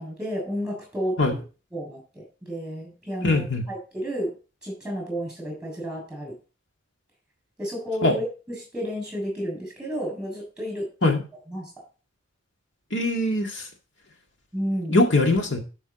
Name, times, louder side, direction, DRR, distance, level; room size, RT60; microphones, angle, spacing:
voice 1, 0.0-1.4 1.7-4.3 4.6-6.3 7.6-11.2 11.5-11.7 14.5-15.0, equal, 5° right, 1 dB, 6.9 m, -31 dB
voice 2, 3.2-3.6 8.0-8.1 11.0-11.2 12.9-13.7 14.9-15.6, left 2 dB, 75° left, 2 dB, 2.0 m, -21 dB
12.5 x 6.2 x 4.1 m, 0.34 s
head